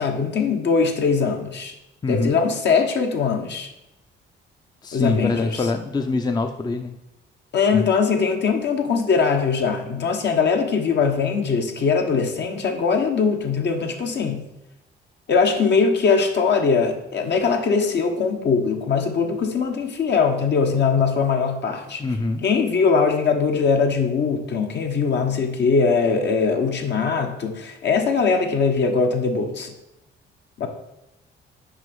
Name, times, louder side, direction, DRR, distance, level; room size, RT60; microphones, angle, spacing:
voice 1, 0.0-1.7 2.1-3.7 4.9-5.6 7.5-14.4 15.3-22.0 22.4-29.7 30.6-30.7, left 5 dB, 60° left, 3 dB, 1.2 m, -21 dB
voice 2, 2.0-2.4 4.8-6.9 7.7-7.9 22.0-22.4, left 3 dB, 20° left, 6 dB, 0.6 m, -24 dB
6.4 x 5.1 x 5.5 m, 0.92 s
cardioid pair, 90°, 20 cm